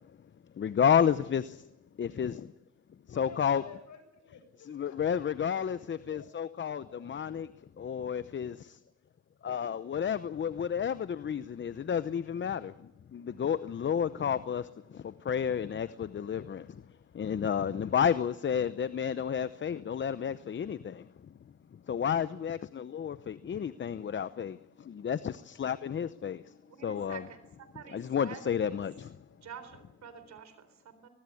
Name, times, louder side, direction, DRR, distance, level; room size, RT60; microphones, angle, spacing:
voice 1, 0.6-1.7 2.0-2.5 3.2-3.6 4.7-7.5 7.8-8.8 9.4-12.7 13.1-16.8 17.1-21.1 21.9-26.5 26.8-27.2 27.9-29.1, left 8 dB, 40° left, 0.8 m, -31 dB
voice 2, 3.1-7.0 26.8-27.2, left 6 dB, 70° left, 7.9 m, -53 dB
voice 3, 26.7-27.2 27.6-28.8 29.3-31.1, right 8 dB, 65° right, 4.1 m, -48 dB
23.5 x 20.0 x 8.5 m
cardioid pair, 90°, 30 cm